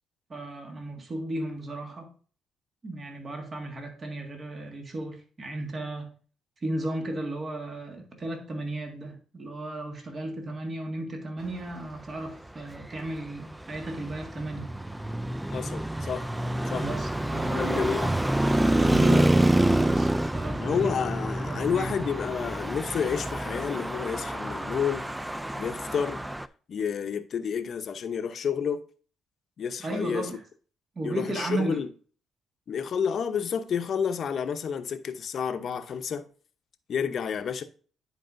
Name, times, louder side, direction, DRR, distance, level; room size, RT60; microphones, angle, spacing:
voice 1, 0.3-2.1 2.8-6.1 6.6-14.7 16.7-17.8 18.7-20.9 21.4-22.0 29.8-30.4 31.0-31.8, right 2 dB, 35° right, 1.7 m, -35 dB
Traffic noise roadway noise, 12.7-26.5, right 1 dB, 10° right, 0.3 m, -27 dB
voice 2, 15.5-16.3 16.7-16.9 17.5-18.1 20.6-25.1 25.5-26.2 26.7-28.8 29.6-30.3 31.0-31.9 32.7-36.3 36.9-37.6, left 7 dB, 55° left, 0.7 m, -30 dB
10.0 x 4.8 x 2.6 m
cardioid pair, 90°, 0 cm